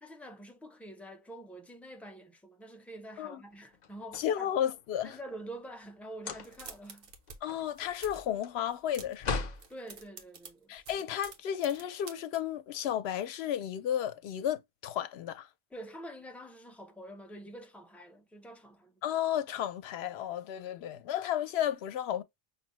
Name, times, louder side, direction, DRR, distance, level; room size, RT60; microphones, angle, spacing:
voice 1, 0.0-4.5 5.0-7.1 9.7-10.9 15.7-19.0, right 1 dB, ahead, 0.5 m, -47 dB
sound 1, 3.7-4.9 6.1-6.8 7.2-9.7, left 4 dB, 50° left, 0.6 m, -39 dB
voice 2, 4.2-5.2 7.4-9.4 10.7-15.5 19.0-22.2, left 10 dB, 85° left, 0.8 m, -33 dB
sound 2, 6.4-7.4 7.6-8.3 8.7-9.3 9.6-12.4, right 5 dB, 65° right, 1.0 m, -49 dB
5.5 x 2.0 x 3.0 m
omnidirectional pair, 1.0 m